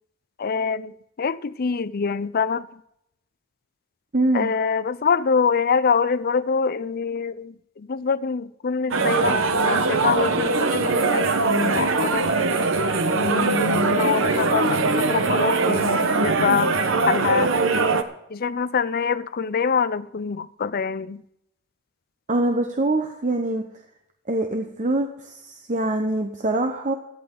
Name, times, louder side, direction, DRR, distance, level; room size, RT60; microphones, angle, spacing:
voice 1, 0.4-2.7 4.3-12.3 13.1-17.5 18.3-21.2, left 5 dB, 45° left, 0.5 m, -25 dB
voice 2, 4.1-4.5 22.3-23.6 24.3-27.0, right 2 dB, 35° right, 0.9 m, -24 dB
sound 1, 8.9-18.0, right 3 dB, 65° right, 1.0 m, -21 dB
17.0 x 13.0 x 3.9 m
head